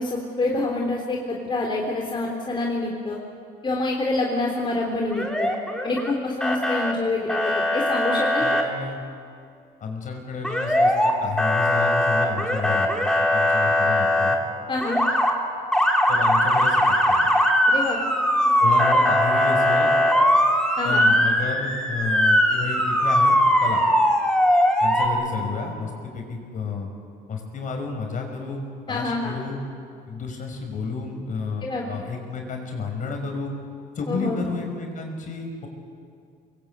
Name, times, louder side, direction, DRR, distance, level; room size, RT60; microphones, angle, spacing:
voice 1, 0.0-3.2 3.6-5.5 5.8-8.5 14.7-15.0 17.7-18.0 20.8-21.0 28.9-29.3 31.6-31.9 34.1-34.4, left 2 dB, 30° left, -1 dB, 3.5 m, -26 dB
Motor vehicle (road) / Siren, 5.1-6.1 6.4-6.9 7.3-8.6 10.4-11.1 11.4-14.4 14.8-15.3 15.7-25.1, equal, 5° left, 3.1 m, -20 dB
voice 2, 8.4-9.0 9.8-12.9 13.3-14.4 16.1-17.3 18.6-19.9 20.8-23.8 24.8-26.9 27.3-29.6 30.1-33.5 33.9-35.7, left 4 dB, 50° left, 3 dB, 5.6 m, -31 dB
24.5 x 21.5 x 8.8 m, 2.4 s
cardioid pair, 110°, 17 cm